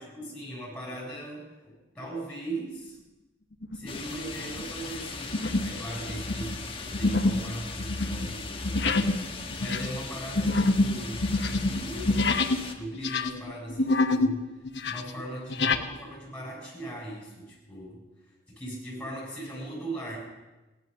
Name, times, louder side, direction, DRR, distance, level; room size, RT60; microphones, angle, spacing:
voice 1, 0.0-3.0 3.7-9.1 9.6-12.4 12.8-18.0 18.5-20.2, right 1 dB, 5° left, -5 dB, 7.1 m, -39 dB
sound 1, 3.6-4.0 4.5-4.7 5.3-5.8 6.1-12.6 12.9-14.4 14.6-15.8, left 2 dB, 60° left, 1.0 m, -27 dB
sound 2, 3.9-12.7, left 4 dB, 30° left, 1.4 m, -39 dB
17.5 x 11.0 x 6.9 m, 1.1 s
head